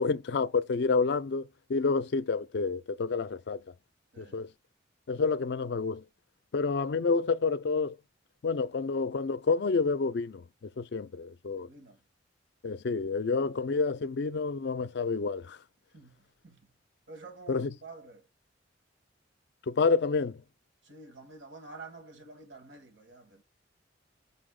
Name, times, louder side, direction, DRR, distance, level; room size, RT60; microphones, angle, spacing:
voice 1, 0.0-3.6 4.2-4.5 5.1-6.0 6.5-8.0 8.4-10.4 10.8-11.7 12.6-15.6 17.5-17.7 19.7-20.4, left 4 dB, 60° left, 0.4 m, -29 dB
voice 2, 4.1-4.5 11.6-12.0 13.4-13.6 15.9-16.7 17.1-18.3 20.8-23.4, right 3 dB, 75° right, 1.4 m, -49 dB
5.5 x 2.3 x 3.6 m
head